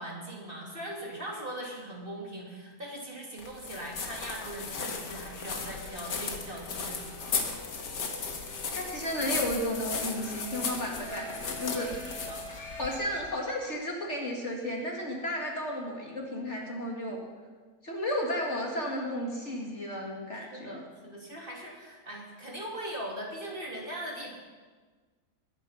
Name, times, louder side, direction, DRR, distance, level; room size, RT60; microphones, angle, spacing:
voice 1, 0.0-7.4 11.7-12.4 20.3-24.4, right 1 dB, 30° right, -3 dB, 3.1 m, -40 dB
sound 1, 3.4-13.3, left 5 dB, 85° left, 2.1 m, -36 dB
sound 2, 5.4-13.5, right 1 dB, 70° right, 3.7 m, -47 dB
voice 2, 8.7-11.9 12.8-17.2 17.8-20.8, left 1 dB, 40° left, -1 dB, 2.5 m, -33 dB
20.5 x 10.0 x 5.6 m, 1.4 s
omnidirectional pair, 1.8 m